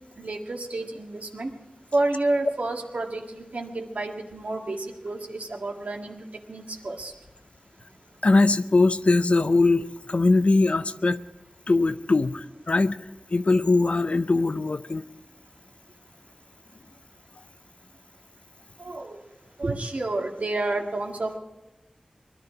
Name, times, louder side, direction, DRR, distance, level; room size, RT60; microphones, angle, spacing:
voice 1, 0.2-1.5 1.9-4.8 5.0-6.1 6.5-7.1 18.9-19.1 19.6-21.4, right 2 dB, 80° right, 2 dB, 1.7 m, -29 dB
voice 2, 8.2-11.2 11.7-13.0 13.3-15.0, left 3 dB, 60° left, 11 dB, 0.6 m, -21 dB
21.0 x 12.5 x 4.9 m, 0.98 s
wide cardioid pair, 50°, 2 cm